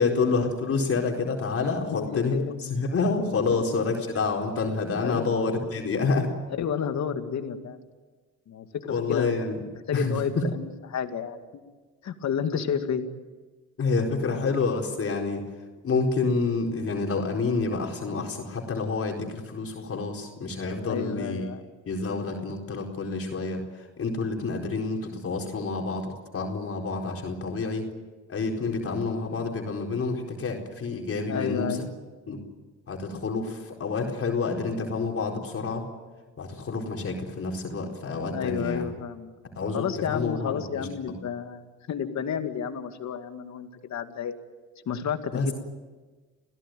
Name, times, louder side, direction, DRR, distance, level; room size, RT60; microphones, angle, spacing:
voice 1, 0.0-6.3 8.9-9.6 9.9-10.4 13.8-15.4 15.8-21.5 21.9-27.9 28.3-31.8 32.3-32.4 32.9-35.9 36.4-38.9 39.5-40.9 45.3-45.5, left 4 dB, 50° left, 1 dB, 4.4 m, -28 dB
voice 2, 1.7-2.5 3.5-3.6 5.0-5.3 6.6-7.8 8.5-9.3 9.9-11.6 12.0-13.0 20.8-21.7 31.3-31.9 38.3-39.3 39.7-44.3 44.9-45.5, left 7 dB, 65° left, 7 dB, 2.3 m, -31 dB
28.0 x 16.5 x 9.3 m, 1.3 s
cardioid pair, 90°, 30 cm